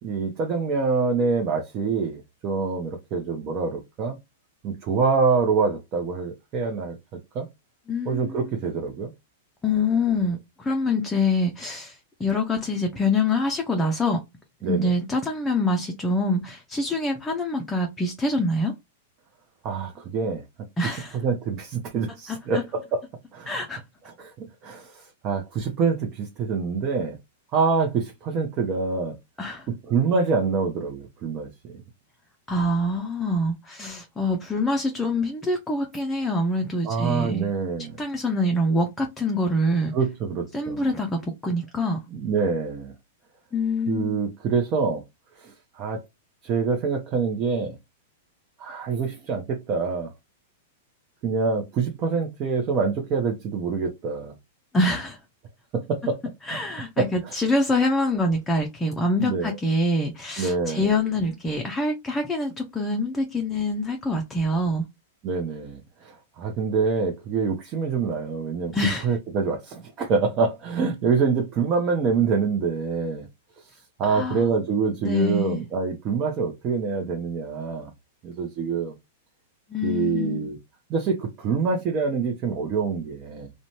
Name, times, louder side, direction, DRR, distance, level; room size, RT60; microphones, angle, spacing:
voice 1, 0.0-4.2 4.6-7.0 7.3-7.5 8.0-9.1 14.6-14.9 19.6-20.4 21.2-23.0 23.3-23.5 24.1-27.2 27.5-29.2 29.7-31.8 36.8-38.0 39.9-40.9 42.1-42.9 43.9-45.0 45.4-46.0 46.4-47.8 48.6-50.1 51.2-54.3 55.7-56.2 56.5-56.6 57.0-57.3 59.2-59.5 60.4-60.9 65.2-73.3 74.0-77.9 78.2-78.9 79.8-80.6 80.9-83.5, right 5 dB, 40° right, 0.7 m, -26 dB
voice 2, 7.9-8.4 9.6-14.2 14.7-18.7 20.8-21.2 22.3-22.6 23.5-23.8 29.4-29.7 32.5-37.5 38.0-39.9 40.5-42.0 43.5-44.3 54.7-55.2 56.4-64.8 68.7-69.1 74.0-74.5 75.0-75.6 79.7-80.5, left 1 dB, 10° left, 0.5 m, -25 dB
2.5 x 2.2 x 3.0 m
hypercardioid pair, 115°, 0 cm